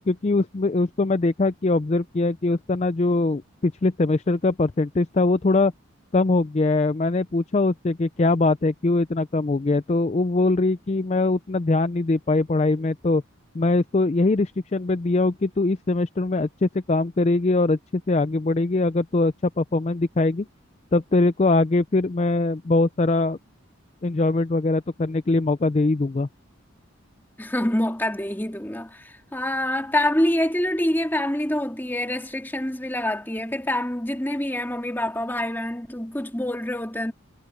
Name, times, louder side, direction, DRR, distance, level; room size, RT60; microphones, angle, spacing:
voice 1, 0.0-5.7 6.1-13.2 13.5-20.5 20.9-23.4 24.0-26.3, left 2 dB, 30° left, 0.4 m, -22 dB
voice 2, 27.4-37.1, left 1 dB, 10° left, 2.4 m, -26 dB
head